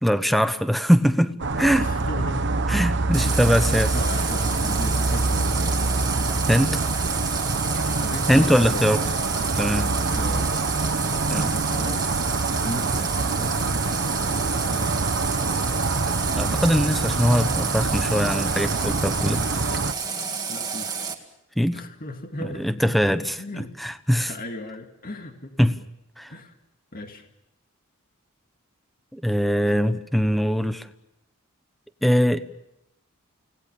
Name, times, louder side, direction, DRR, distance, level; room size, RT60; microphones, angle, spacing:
voice 1, 0.0-1.9 2.7-3.9 6.5-6.8 8.3-9.0 9.5-9.9 11.3-11.5 16.4-19.5 21.6-21.8 22.4-24.3 25.6-25.8 26.2-26.3 29.1-30.9 32.0-32.4, equal, ahead, 10 dB, 1.1 m, -22 dB
sound 1, 1.4-19.9, right 3 dB, 55° right, 1.1 m, -25 dB
voice 2, 1.8-2.6 3.2-3.5 3.9-6.8 7.9-9.1 10.0-10.5 11.3-12.1 12.4-13.6 14.2-14.9 20.5-20.9 21.7-22.7 23.0-23.7 24.3-25.6 26.3-26.6 26.9-27.3, left 1 dB, 40° left, 5 dB, 2.2 m, -37 dB
Water tap faucet, 3.1-21.1, right 5 dB, 20° right, 2.3 m, -30 dB
30.0 x 19.0 x 7.0 m, 0.85 s
head